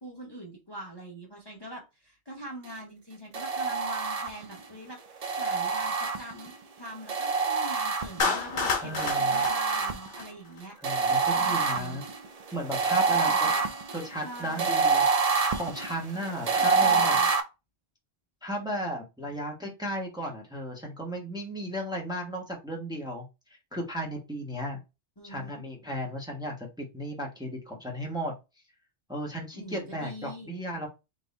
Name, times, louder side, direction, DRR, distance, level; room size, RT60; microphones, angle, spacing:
voice 1, 0.0-10.8 11.4-12.0 13.1-13.6 14.2-14.8 16.4-17.3 25.2-25.6 29.5-30.6, equal, 25° left, -1 dB, 0.8 m, -43 dB
sound 1, 3.3-4.6 5.2-6.5 7.1-8.4 9.0-10.3 10.8-17.4, right 5 dB, 50° right, 0.5 m, -26 dB
Clapping, 8.2-10.6, left 4 dB, 60° left, 1.0 m, -30 dB
voice 2, 8.8-9.4 10.8-12.0 12.5-13.5 13.9-15.0 15.5-17.2 18.4-23.2 23.7-24.8 25.2-28.3 29.1-30.9, equal, 5° right, 0 dB, 1.0 m, -35 dB
3.9 x 2.5 x 4.0 m, 0.26 s
omnidirectional pair, 1.1 m